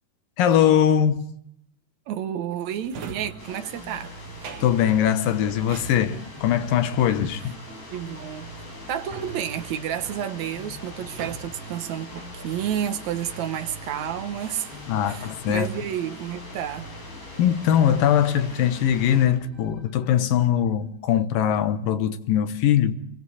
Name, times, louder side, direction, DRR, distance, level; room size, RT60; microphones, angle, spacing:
voice 1, 0.4-1.3 4.6-7.6 14.9-15.7 17.4-23.0, left 9 dB, 75° left, 2.7 m, -21 dB
voice 2, 2.1-4.1 7.9-8.5 8.9-14.7 15.1-16.9, right 10 dB, 70° right, 1.9 m, -30 dB
Drawer open or close, 2.7-13.9 14.4-15.6 16.0-16.5, right 4 dB, 50° right, 2.7 m, -44 dB
sound 1, 3.0-20.5, right 2 dB, 5° right, 6.5 m, -44 dB
sound 2, 3.4-19.3, left 2 dB, 60° left, 8.1 m, -43 dB
28.0 x 23.5 x 4.2 m
omnidirectional pair, 4.2 m